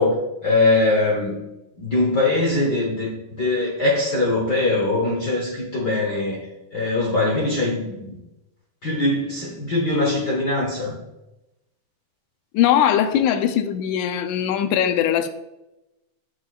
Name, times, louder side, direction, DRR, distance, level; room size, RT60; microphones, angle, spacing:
voice 1, 0.0-1.4 1.8-6.4 6.7-8.2 8.8-10.9, left 2 dB, 65° left, 1.0 m, -22 dB
voice 2, 12.5-15.3, left 10 dB, 85° left, 2.1 m, -20 dB
8.5 x 8.1 x 2.4 m
omnidirectional pair, 3.5 m